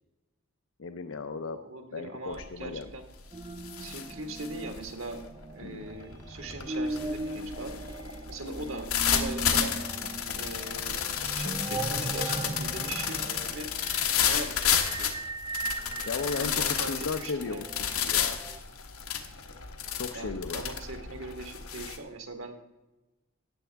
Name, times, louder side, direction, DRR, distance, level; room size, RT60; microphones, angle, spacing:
voice 1, 0.8-1.6 1.9-2.9 5.6-5.9 16.1-18.4 19.9-20.6, left 4 dB, 65° left, 8 dB, 0.5 m, -36 dB
voice 2, 1.4-3.0 3.8-5.2 5.5-7.7 8.3-9.8 10.3-13.7 14.3-14.7 15.0-15.1 16.4-17.6 20.1-22.5, right 2 dB, 65° right, 4 dB, 1.6 m, -40 dB
sound 1, 2.3-2.7 3.0-22.0, left 8 dB, 85° left, 1.2 m, -31 dB
sound 2, 3.3-18.6, right 2 dB, 15° right, 0.3 m, -38 dB
14.0 x 9.6 x 3.4 m, 1.1 s
head